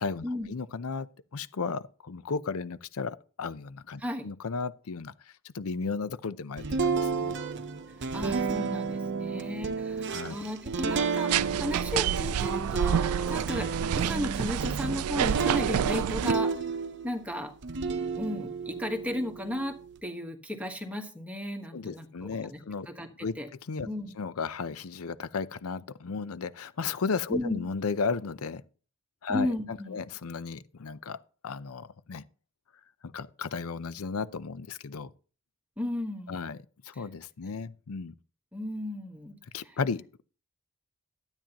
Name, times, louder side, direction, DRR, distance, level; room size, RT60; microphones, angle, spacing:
voice 1, 0.0-5.1 5.4-7.4 10.1-10.4 21.7-22.9 23.2-23.3 23.6-23.9 24.2-28.6 29.2-31.2 31.4-32.2 33.0-35.1 36.3-36.6 36.8-38.1 39.5-40.2, left 5 dB, 75° left, 0.6 m, -34 dB
sound 1, 6.6-17.2 17.6-19.9, right 5 dB, 55° right, 0.8 m, -32 dB
voice 2, 8.1-13.7 13.9-16.5 17.0-17.5 18.2-19.8 20.0-22.6 22.9-23.5 23.8-24.1 27.3-27.6 29.3-30.0 35.8-36.4 38.5-39.4, left 1 dB, 5° right, 1.3 m, -34 dB
sound 2, 11.3-16.3, right 9 dB, 80° right, 0.3 m, -28 dB
12.5 x 9.0 x 2.9 m
head